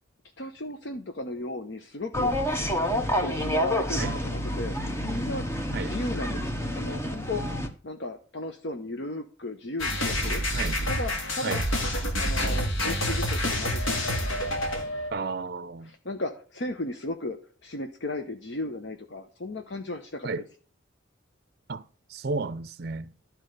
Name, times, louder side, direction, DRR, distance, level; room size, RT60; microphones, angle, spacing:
voice 1, 0.4-2.3 3.2-4.7 5.0-6.4 6.7-7.4 7.8-10.4 10.9-11.6 12.2-14.3 15.8-17.4 17.6-20.4, left 2 dB, 60° left, 0.8 m, -35 dB
sound 1, 2.1-7.7, equal, 15° left, 0.9 m, -28 dB
sound 2, 9.8-15.1, left 1 dB, 85° left, 2.0 m, -28 dB
voice 2, 15.1-15.9 20.2-20.4 21.7-21.8 22.1-23.1, right 4 dB, 50° right, 0.5 m, -32 dB
12.0 x 4.5 x 6.6 m
head